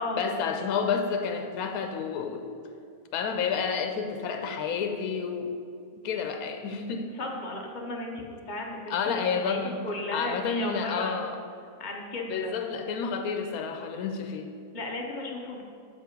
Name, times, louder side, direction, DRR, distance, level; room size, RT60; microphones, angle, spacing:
voice 1, 0.2-2.5 3.1-5.5 6.0-7.1 8.9-9.8 10.1-11.4 12.3-14.5, left 5 dB, 85° left, 6 dB, 1.1 m, -30 dB
voice 2, 7.1-9.6 9.8-11.3 11.8-12.5 14.7-15.6, left 2 dB, 40° left, 0 dB, 0.8 m, -35 dB
6.7 x 5.2 x 5.1 m, 2.3 s
omnidirectional pair, 1.5 m